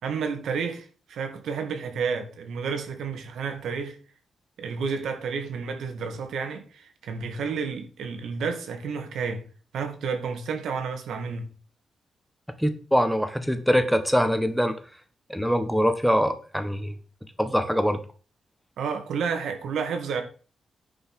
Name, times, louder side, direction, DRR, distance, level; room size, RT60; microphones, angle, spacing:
voice 1, 0.0-4.0 4.6-9.4 9.7-11.5 18.8-20.2, right 5 dB, 85° right, 2.3 m, -31 dB
voice 2, 12.6-14.7 15.3-16.9 17.4-18.0, equal, ahead, 1.4 m, -23 dB
10.0 x 5.4 x 6.2 m
cardioid pair, 115°, 0 cm